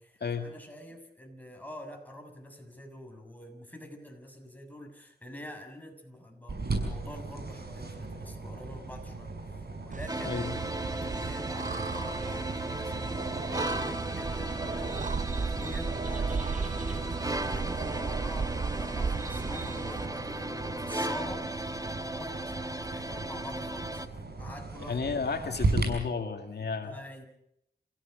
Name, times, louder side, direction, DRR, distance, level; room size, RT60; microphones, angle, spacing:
voice 1, 0.1-9.4 9.8-10.4 11.0-17.1 17.4-21.7 22.0-24.0 24.4-25.1 26.8-27.3, equal, 10° left, 3 dB, 7.0 m, -46 dB
sound 1, 6.5-25.9, right 3 dB, 70° right, 6.2 m, -38 dB
sound 2, 9.9-20.1, right 5 dB, 50° right, 0.8 m, -35 dB
sound 3, 10.1-24.1, right 1 dB, 20° right, 1.5 m, -36 dB
voice 2, 24.9-27.0, left 5 dB, 75° left, 5 dB, 2.2 m, -32 dB
28.5 x 16.5 x 6.6 m, 0.75 s
cardioid pair, 55°, 17 cm